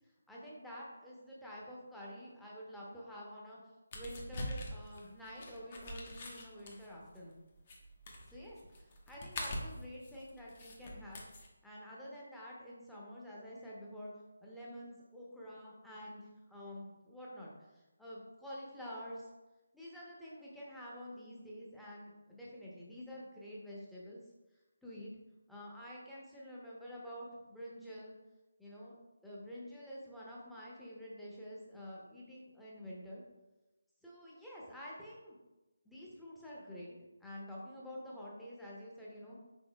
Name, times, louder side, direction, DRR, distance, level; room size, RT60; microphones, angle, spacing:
voice 1, 0.3-3.6 3.9-7.3 8.3-11.2 11.6-14.1 14.4-19.2 19.7-24.2 24.8-25.1 25.5-28.1 28.6-33.2 34.0-35.4 35.8-36.9 37.2-39.4, equal, ahead, -7 dB, 0.8 m, -48 dB
sound 1, 3.9-11.5, left 1 dB, 35° left, 0.8 m, -44 dB
5.4 x 3.8 x 2.3 m, 1.1 s
figure-of-eight pair, 150°, 0 cm